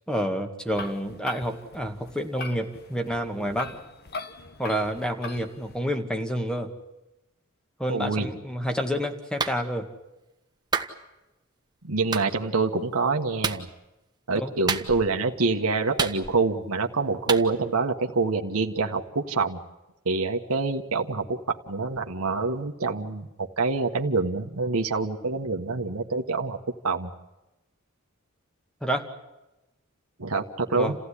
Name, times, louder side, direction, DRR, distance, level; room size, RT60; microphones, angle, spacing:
voice 1, 0.1-3.8 4.6-6.7 7.8-9.9 14.3-14.5 28.8-29.1 30.8-30.9, equal, 5° left, 6 dB, 2.1 m, -29 dB
sound 1, 0.7-5.8, left 4 dB, 50° left, 1.5 m, -41 dB
voice 2, 7.9-8.3 11.8-13.7 14.3-19.6 20.0-26.6 26.8-27.1 30.2-31.0, right 3 dB, 90° right, 3 dB, 1.5 m, -26 dB
Clapping, 9.4-9.6 10.7-10.9 12.1-12.3 13.4-13.6 14.7-15.1 16.0-16.5 17.3-17.5, right 5 dB, 20° right, 1.4 m, -28 dB
29.0 x 15.5 x 10.0 m, 0.99 s
head